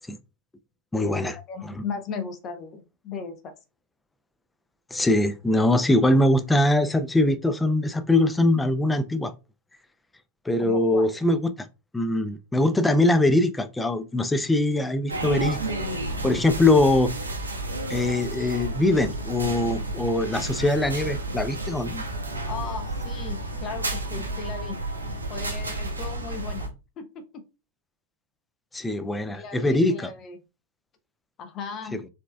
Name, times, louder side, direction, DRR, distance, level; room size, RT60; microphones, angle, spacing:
voice 1, 0.9-1.4 1.6-1.8 4.9-9.3 10.5-11.7 11.9-15.6 16.2-17.1 17.9-22.0 28.7-30.1, left 1 dB, 10° left, 0.4 m, -22 dB
voice 2, 1.5-3.5 10.6-11.1 22.4-24.9 25.3-27.5 29.3-30.4 31.4-32.0, left 5 dB, 35° left, 0.8 m, -37 dB
sound 1, 15.1-26.7, right 2 dB, 80° right, 0.7 m, -31 dB
4.2 x 3.3 x 2.2 m
figure-of-eight pair, 90°, 0 cm